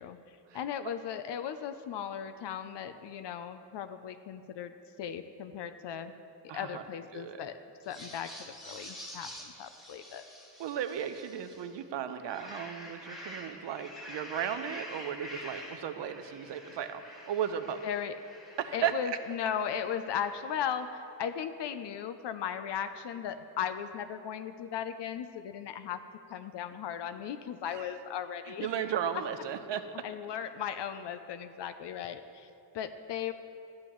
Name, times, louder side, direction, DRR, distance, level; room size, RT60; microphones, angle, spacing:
voice 1, 0.0-6.1 6.5-7.6 7.9-10.2 17.8-18.1 18.7-26.0 26.3-28.9 30.0-32.5 32.7-33.3, left 8 dB, 80° left, 9 dB, 0.5 m, -37 dB
voice 2, 6.5-6.8 7.1-7.4 10.6-17.8 18.6-18.9 27.7-27.9 28.5-29.8, right 9 dB, 90° right, 10 dB, 0.6 m, -35 dB
sound 1, 7.8-11.7 12.1-20.8, left 1 dB, ahead, 1.5 m, -48 dB
13.5 x 8.7 x 3.0 m, 2.6 s
wide cardioid pair, 140°, 42 cm